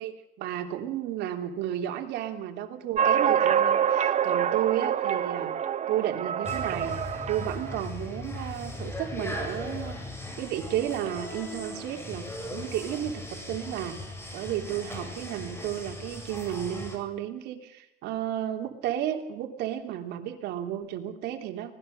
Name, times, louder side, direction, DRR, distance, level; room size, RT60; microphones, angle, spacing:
voice 1, 0.0-5.5 5.9-6.9 7.3-10.0 10.4-13.9 14.3-21.7, right 11 dB, 85° right, 4 dB, 3.3 m, -32 dB
sound 1, 3.0-7.7, right 8 dB, 45° right, 1.0 m, -26 dB
sound 2, 6.4-17.0, left 1 dB, 15° left, 7.4 m, -38 dB
25.0 x 19.0 x 6.8 m, 0.89 s
cardioid pair, 110°, 17 cm